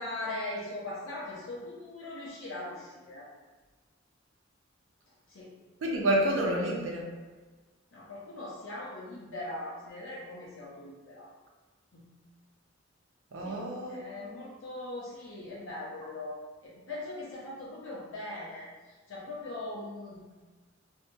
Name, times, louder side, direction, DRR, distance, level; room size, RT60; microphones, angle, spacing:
voice 1, 0.0-3.3 5.3-5.6 7.9-11.3 11.9-12.1 13.4-13.6 13.9-18.7 19.1-20.2, left 2 dB, 80° left, -7 dB, 0.6 m, -40 dB
voice 2, 5.8-7.0 13.3-14.4, right 1 dB, 75° right, -1 dB, 0.5 m, -29 dB
2.7 x 2.6 x 2.2 m, 1.3 s
head